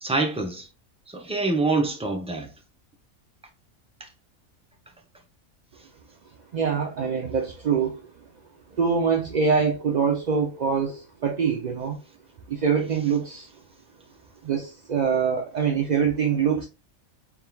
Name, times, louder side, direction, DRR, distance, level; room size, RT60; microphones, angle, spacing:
voice 1, 0.0-0.7 1.1-2.5, right 3 dB, 5° right, 0.5 m, -25 dB
voice 2, 6.5-8.1 8.8-12.0 12.5-13.5 14.4-16.7, right 6 dB, 60° right, 0.4 m, -24 dB
4.4 x 3.6 x 2.2 m
omnidirectional pair, 1.4 m